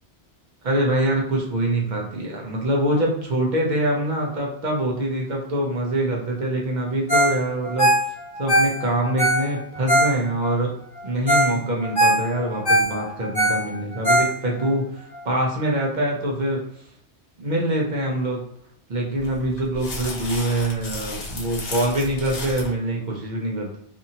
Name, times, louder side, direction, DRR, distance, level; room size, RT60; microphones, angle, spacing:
voice 1, 0.6-10.7 11.0-16.6 17.4-18.4 18.9-23.8, right 1 dB, 45° right, -1 dB, 0.7 m, -24 dB
Ringtone, 7.1-7.4 7.6-10.5 11.0-11.1 11.3-11.5 11.8-14.7 15.1-15.2, right 1 dB, 5° left, 1.4 m, -20 dB
sound 1, 19.2-22.7, left 2 dB, 70° left, 1.0 m, -34 dB
2.6 x 2.6 x 2.7 m, 0.69 s
omnidirectional pair, 1.2 m